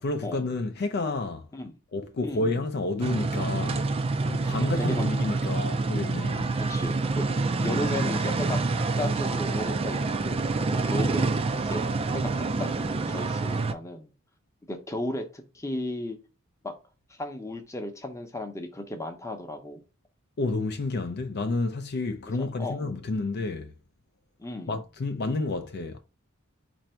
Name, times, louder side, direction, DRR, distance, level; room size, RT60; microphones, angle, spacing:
voice 1, 0.0-1.5 1.9-3.9 4.3-6.6 20.4-23.7 24.7-26.0, left 3 dB, 50° left, 0.4 m, -30 dB
sound 1, 3.0-13.7, right 3 dB, 30° right, 0.4 m, -27 dB
voice 2, 4.8-5.1 5.4-5.6 6.7-11.8 12.1-14.1 14.7-16.2 16.6-16.7 17.1-19.8 22.6-22.9 24.4-24.7, left 1 dB, 15° left, 0.7 m, -35 dB
4.3 x 2.6 x 4.3 m
head